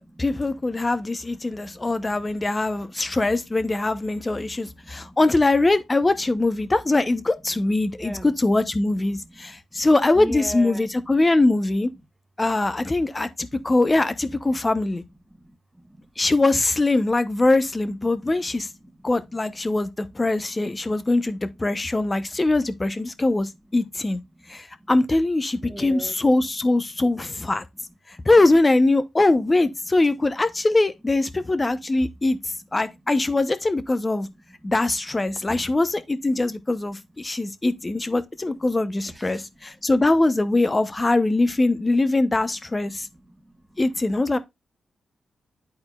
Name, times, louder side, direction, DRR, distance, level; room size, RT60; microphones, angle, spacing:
voice 1, 0.0-11.9 12.4-15.0 16.2-18.7 19.0-24.2 24.5-27.6 28.1-34.3 34.6-43.1 43.8-44.4, left 2 dB, 25° left, 0.7 m, -22 dB
voice 2, 1.5-2.2 3.0-3.2 4.4-5.2 7.8-8.3 9.1-9.6 10.1-10.9 12.9-13.0 15.3-16.1 20.4-20.5 24.5-24.9 25.6-26.1 28.2-28.3 34.6-34.7 35.5-35.6 39.1-39.4 42.9-43.8, right 1 dB, 5° right, 1.3 m, -41 dB
10.5 x 4.3 x 2.3 m
cardioid pair, 80°, 0 cm